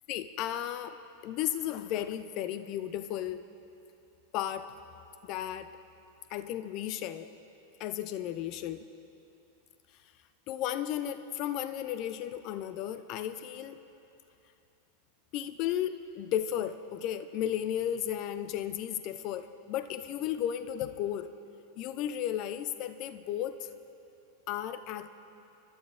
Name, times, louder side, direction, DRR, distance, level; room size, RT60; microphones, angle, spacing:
voice 1, 0.1-1.0 1.2-3.5 4.3-4.7 5.2-5.7 6.3-7.3 7.8-8.8 10.5-13.8 15.3-21.3 21.8-23.7 24.5-25.1, left 11 dB, 40° left, 11 dB, 0.5 m, -34 dB
27.0 x 12.0 x 2.5 m, 2.9 s
figure-of-eight pair, 90°, 0 cm